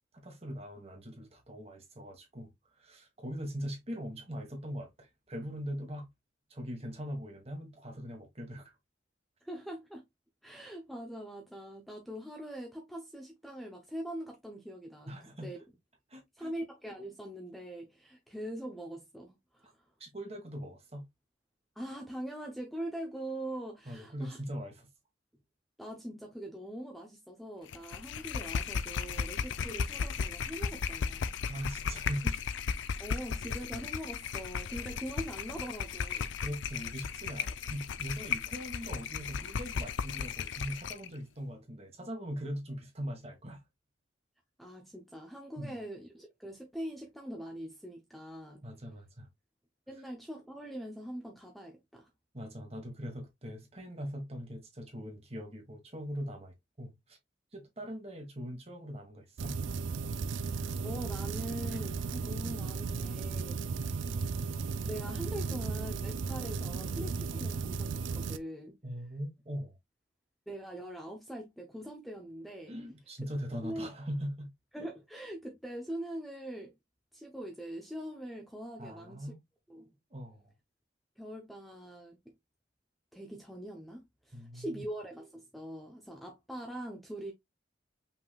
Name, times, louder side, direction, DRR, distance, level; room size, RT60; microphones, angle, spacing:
voice 1, 0.1-2.5 2.8-6.1 6.5-8.7 15.1-15.5 16.1-16.5 19.6-19.7 20.0-21.1 23.8-24.9 31.5-32.4 36.4-43.6 45.6-45.8 48.6-49.3 52.3-57.2 57.5-59.6 68.8-69.8 72.7-74.5 78.8-79.4 80.1-80.5 84.3-84.8, equal, 35° right, 1.5 m, -41 dB
voice 2, 9.4-10.0 10.4-15.1 15.4-15.6 16.4-19.9 21.8-24.4 25.8-31.3 33.0-36.3 44.6-48.7 49.9-52.1 60.5-64.1 64.5-68.8 70.5-72.7 73.6-73.9 74.7-76.7 77.1-79.3 79.7-79.9 81.2-82.3 83.1-87.3, right 1 dB, ahead, 0.7 m, -43 dB
sound 1, 27.7-41.1, left 6 dB, 80° left, 0.4 m, -35 dB
sound 2, 59.4-68.4, right 4 dB, 80° right, 0.4 m, -35 dB
5.6 x 3.6 x 2.3 m
head